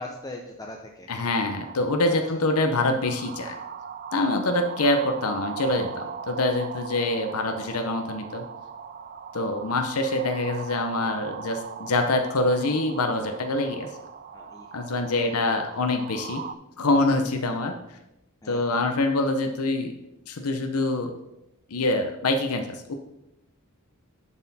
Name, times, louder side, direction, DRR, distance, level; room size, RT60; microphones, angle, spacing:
voice 1, 0.0-1.1 2.1-2.2 14.3-14.7 15.1-15.2 15.5-15.7 18.4-18.8, left 2 dB, 15° left, 1 dB, 0.6 m, -40 dB
voice 2, 1.1-3.6 4.1-8.4 9.3-13.9 14.7-16.4 16.8-17.7 18.5-19.9 20.3-21.1 21.7-22.9, left 2 dB, 80° left, 5 dB, 0.8 m, -25 dB
sound 1, 1.6-16.6, right 7 dB, 40° right, 0.3 m, -39 dB
10.5 x 4.3 x 4.1 m, 0.89 s
head